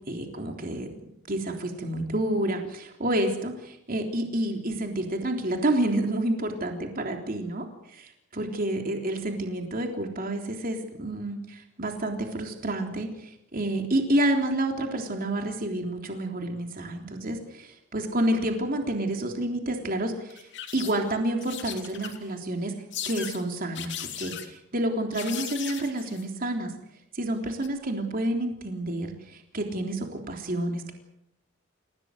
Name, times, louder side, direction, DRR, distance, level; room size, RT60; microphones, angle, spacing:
voice 1, 0.1-20.5 20.7-22.7 23.0-26.7 27.1-30.9, right 1 dB, 45° right, 3 dB, 3.5 m, -29 dB
sound 1, 20.3-21.1 21.4-22.3 22.9-23.4 23.7-24.5 25.1-26.2 27.5-27.7, left 10 dB, 55° left, 3.1 m, -37 dB
29.0 x 17.0 x 7.9 m, 0.80 s
head